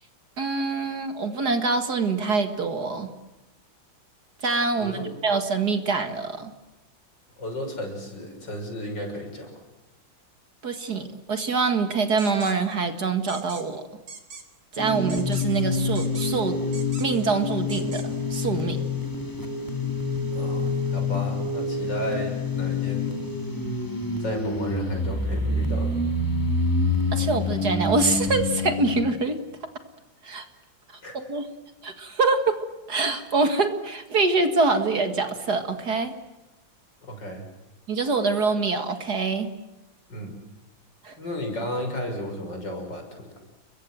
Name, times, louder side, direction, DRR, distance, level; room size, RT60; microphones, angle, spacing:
voice 1, 0.4-3.1 4.4-6.5 10.6-13.9 14.7-16.6 17.0-18.8 27.1-29.4 30.2-30.5 31.1-31.5 31.8-32.6 32.9-36.1 37.9-39.5 41.0-41.2, right 4 dB, 50° right, 8 dB, 2.4 m, -25 dB
voice 2, 4.7-5.1 7.4-9.6 20.3-23.2 24.2-26.0 31.0-31.2 37.0-37.5 40.1-40.4 41.2-43.4, equal, 60° left, 4 dB, 7.1 m, -33 dB
sound 1, 12.2-12.5 13.3-13.6 14.1-14.4 15.1-15.6 15.9-16.4 16.7-17.2 17.7-18.1, right 4 dB, 75° right, 3.9 m, -41 dB
sound 2, 14.8-29.0, left 3 dB, 10° left, 2.9 m, -27 dB
30.0 x 23.0 x 7.9 m, 1.0 s
omnidirectional pair, 2.2 m